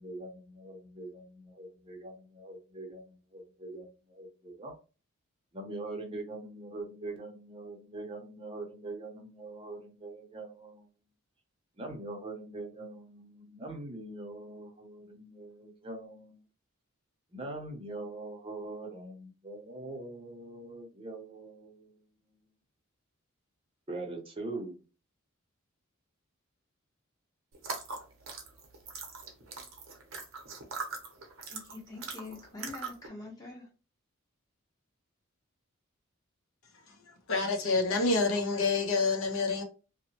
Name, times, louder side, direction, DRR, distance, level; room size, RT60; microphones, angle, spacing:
voice 1, 0.0-4.8 5.5-10.9 11.8-16.4 17.3-22.0 23.9-24.8, right 2 dB, 25° right, 0.6 m, -43 dB
sound 1, 27.5-33.1, right 4 dB, 65° right, 0.7 m, -41 dB
voice 2, 31.5-33.7, left 3 dB, 15° left, 0.8 m, -45 dB
voice 3, 37.3-39.6, left 3 dB, 75° left, 0.7 m, -27 dB
2.7 x 2.1 x 2.8 m
head